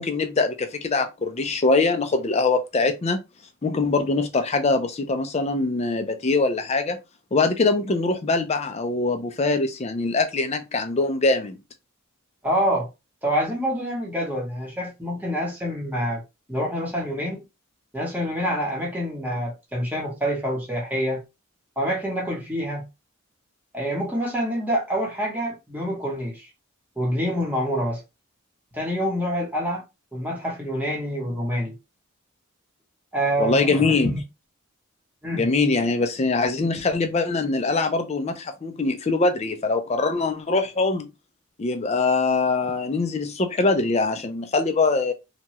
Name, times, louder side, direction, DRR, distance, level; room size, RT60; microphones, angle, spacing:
voice 1, 0.0-3.2 3.6-7.0 7.3-11.6 33.4-34.1 35.3-41.1 41.6-45.1, left 3 dB, 30° left, 0.4 m, -23 dB
voice 2, 12.4-12.9 13.2-16.2 16.5-17.4 17.9-21.2 21.8-22.9 23.7-26.5 27.0-28.0 28.7-29.8 30.1-31.7 33.1-34.2 35.2-35.5, equal, 10° right, 0.9 m, -26 dB
2.9 x 2.2 x 2.9 m
head